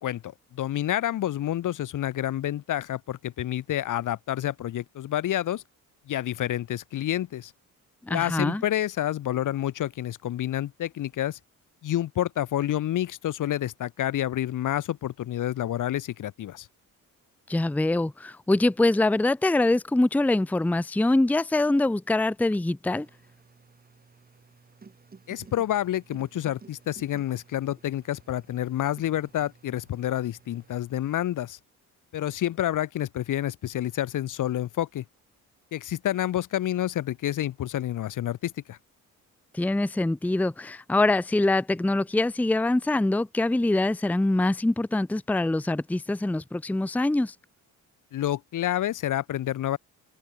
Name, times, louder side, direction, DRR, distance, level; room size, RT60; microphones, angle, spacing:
voice 1, 0.0-5.6 6.1-7.5 8.1-11.4 11.8-16.7 25.3-31.6 32.1-35.0 35.7-38.8 48.1-49.8, left 12 dB, 65° left, 1.4 m, -29 dB
voice 2, 8.1-8.6 17.5-23.1 39.5-47.3, left 2 dB, 5° left, 0.7 m, -24 dB
sound 1, 22.8-30.8, right 4 dB, 25° right, 3.8 m, -53 dB
cardioid pair, 115°, 34 cm